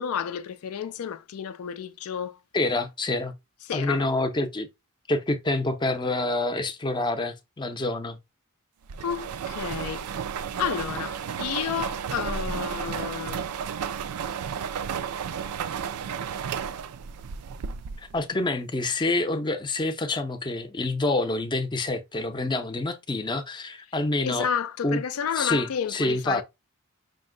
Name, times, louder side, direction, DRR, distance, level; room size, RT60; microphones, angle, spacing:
voice 1, 0.0-2.4 3.7-4.1 9.0-10.1 10.6-13.5 24.2-26.4, left 8 dB, 65° left, 0.4 m, -31 dB
voice 2, 2.5-3.3 3.7-4.7 5.1-8.2 18.0-24.5 24.8-25.0 25.4-26.4, left 2 dB, 20° left, 0.6 m, -27 dB
sound 1, 8.9-18.2, right 7 dB, 80° right, 0.4 m, -33 dB
5.3 x 2.1 x 3.7 m
head